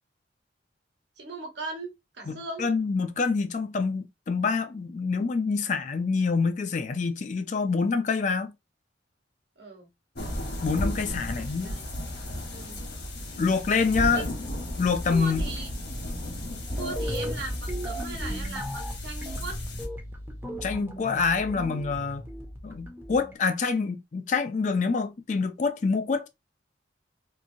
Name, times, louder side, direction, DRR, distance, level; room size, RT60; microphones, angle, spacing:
voice 1, 1.2-2.7 9.6-9.9 11.3-11.8 12.5-12.8 14.1-14.2 15.1-15.7 16.8-19.6, right 3 dB, 75° right, 1.0 m, -38 dB
voice 2, 2.3-8.5 10.6-11.7 13.4-14.3 14.8-15.5 20.6-22.3 22.6-26.3, left 4 dB, 45° left, 0.4 m, -26 dB
sound 1, 10.1-19.9, left 1 dB, 65° left, 1.3 m, -34 dB
sound 2, 16.6-23.3, equal, 10° right, 0.6 m, -36 dB
3.0 x 2.5 x 2.6 m
head